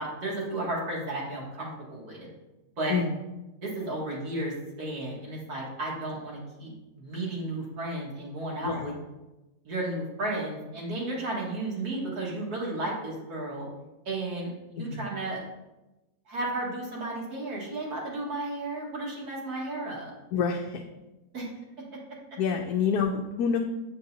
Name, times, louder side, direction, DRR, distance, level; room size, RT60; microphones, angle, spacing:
voice 1, 0.0-2.3 2.8-3.0 3.6-8.9 9.6-13.7 14.1-15.4 16.3-20.1 21.3-21.5, right 2 dB, 80° right, -4 dB, 2.3 m, -33 dB
voice 2, 8.6-8.9 14.8-15.1 20.3-20.8 22.4-23.6, left 6 dB, 80° left, 3 dB, 1.1 m, -27 dB
8.8 x 5.2 x 2.8 m, 1.0 s
omnidirectional pair, 1.6 m